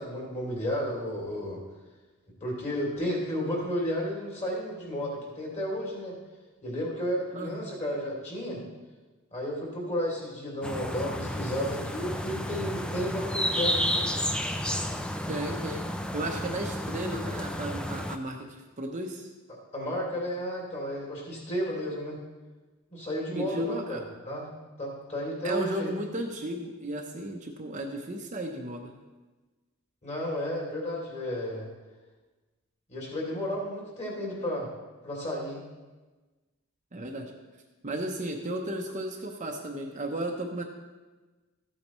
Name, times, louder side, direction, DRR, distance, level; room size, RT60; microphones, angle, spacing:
voice 1, 0.0-1.6 2.4-6.1 6.6-8.6 9.3-14.1 19.7-22.2 22.9-24.0 24.2-24.5 24.8-25.9 30.0-31.7 32.9-34.7 35.0-35.6, equal, 30° left, -2 dB, 2.9 m, -32 dB
voice 2, 7.3-7.7 15.3-15.8 16.1-19.3 23.3-24.0 25.4-28.9 36.9-37.3 37.8-40.6, right 1 dB, 35° right, 2 dB, 0.8 m, -34 dB
sound 1, 10.6-18.2, equal, 5° left, 0.4 m, -31 dB
14.0 x 8.6 x 3.1 m, 1.2 s
head